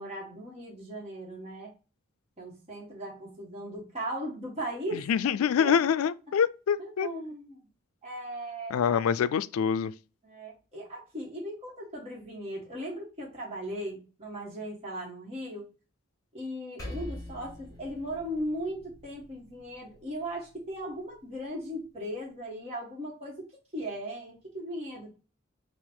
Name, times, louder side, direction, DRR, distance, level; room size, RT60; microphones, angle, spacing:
voice 1, 0.0-1.7 2.4-5.1 5.6-5.7 6.8-7.6 8.0-9.0 10.2-15.7 16.3-23.5 23.7-25.1, equal, 30° right, 1.3 m, -38 dB
voice 2, 4.9-7.1 8.7-9.9, left 7 dB, 85° left, 0.3 m, -25 dB
Percussion, 16.8-21.6, left 1 dB, 15° left, 1.6 m, -45 dB
3.9 x 2.5 x 4.3 m
head